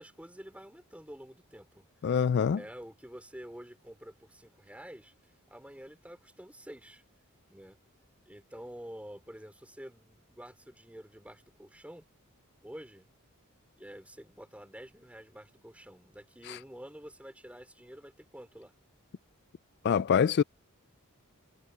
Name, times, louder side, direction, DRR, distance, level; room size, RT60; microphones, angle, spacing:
voice 1, 0.0-1.9 2.5-7.0 7.5-7.8 8.3-12.1 12.6-13.1 13.8-18.8, equal, 5° right, 4.0 m, -48 dB
voice 2, 2.0-2.6 16.5-16.6 19.8-20.4, left 7 dB, 50° left, 0.3 m, -25 dB
head